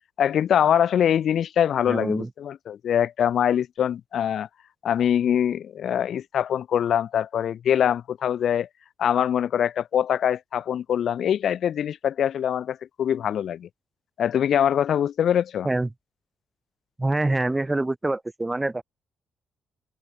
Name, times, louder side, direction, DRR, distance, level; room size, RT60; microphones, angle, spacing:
voice 1, 0.2-4.5 4.8-8.7 9.0-13.7 14.2-15.7, left 9 dB, 65° left, 2.6 m, -23 dB
voice 2, 1.9-2.3 15.6-15.9 17.0-18.8, right 2 dB, 15° right, 4.6 m, -25 dB
open air
cardioid pair, 90°, 0 cm